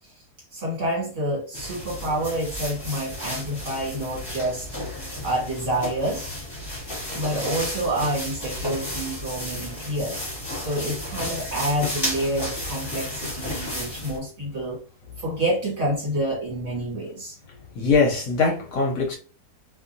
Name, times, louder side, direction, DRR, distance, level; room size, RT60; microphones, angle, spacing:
voice 1, 0.5-4.7 5.2-6.3 7.1-10.2 10.6-14.8 15.2-17.4, right 1 dB, 50° right, 1.9 m, -28 dB
sound 1, 1.5-14.2, left 1 dB, 15° left, 1.4 m, -33 dB
voice 2, 17.7-19.2, left 4 dB, 65° left, 1.0 m, -21 dB
2.8 x 2.6 x 2.6 m
omnidirectional pair, 1.7 m